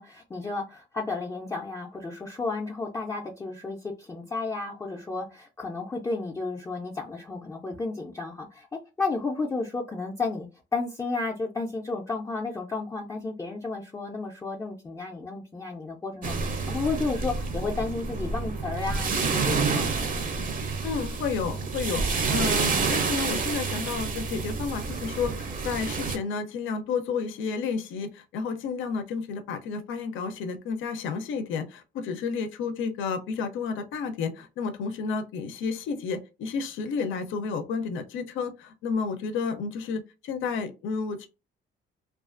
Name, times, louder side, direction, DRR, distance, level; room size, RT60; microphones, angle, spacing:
voice 1, 0.0-20.3, left 3 dB, 15° left, 0.4 m, -32 dB
sound 1, 16.2-26.2, right 4 dB, 45° right, 0.5 m, -29 dB
voice 2, 20.8-22.0 22.3-41.3, left 5 dB, 85° left, 0.5 m, -31 dB
2.4 x 2.3 x 2.4 m
cardioid pair, 90°, 20 cm